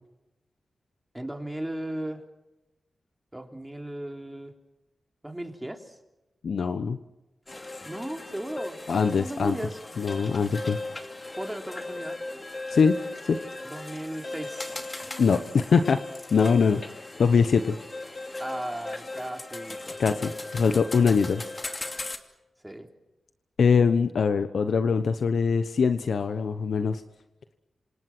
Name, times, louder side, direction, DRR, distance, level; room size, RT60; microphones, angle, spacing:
voice 1, 1.1-2.2 3.3-4.5 5.2-6.0 7.9-9.8 11.4-12.2 13.6-14.7 18.4-20.4 22.6-22.9, right 1 dB, 10° right, 4 dB, 3.5 m, -36 dB
voice 2, 6.4-7.0 8.9-9.6 10.0-10.8 12.7-13.0 13.3-13.4 15.2-16.0 16.3-17.8 20.0-21.4 23.6-27.0, left 5 dB, 75° left, 9 dB, 1.0 m, -23 dB
sound 1, 7.5-22.2, left 2 dB, 30° left, 2.7 m, -37 dB
27.5 x 27.0 x 6.2 m, 0.97 s
cardioid pair, 70°, 0 cm